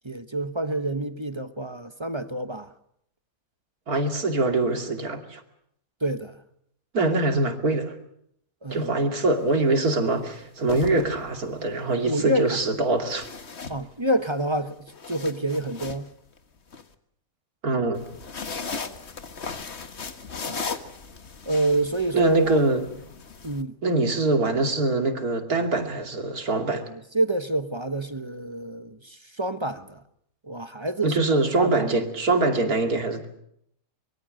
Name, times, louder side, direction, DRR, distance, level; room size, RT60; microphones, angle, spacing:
voice 1, 0.0-2.7 6.0-6.4 8.6-9.1 11.9-12.6 13.7-16.1 20.5-20.7 21.5-22.6 23.4-23.8 26.7-30.0 30.4-31.2 31.6-31.9, right 1 dB, 20° right, 1.0 m, -28 dB
voice 2, 3.9-5.4 6.9-7.9 8.7-13.3 17.6-18.1 22.1-22.9 23.8-26.9 31.0-33.3, right 2 dB, 75° right, 3.1 m, -23 dB
sound 1, 9.3-9.5 10.5-11.6 13.1-14.3 14.7-16.8 17.9-23.6, left 5 dB, 45° left, 1.7 m, -37 dB
24.5 x 22.5 x 6.5 m
omnidirectional pair, 1.6 m